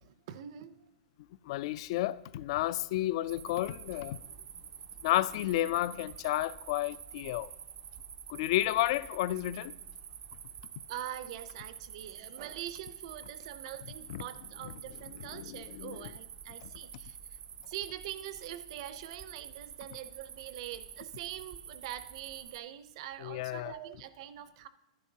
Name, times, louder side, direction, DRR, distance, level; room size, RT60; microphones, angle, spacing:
voice 1, 0.0-0.8 10.9-17.2 17.7-24.7, right 12 dB, 55° right, 0.6 m, -44 dB
voice 2, 1.5-4.2 5.0-7.5 8.3-9.7 14.1-14.2 15.3-16.1 16.6-16.7 23.2-23.7, left 15 dB, 55° left, 0.4 m, -31 dB
sound 1, 3.3-22.6, right 8 dB, 20° right, 0.3 m, -48 dB
11.0 x 10.5 x 2.8 m
supercardioid pair, 145°, 4 cm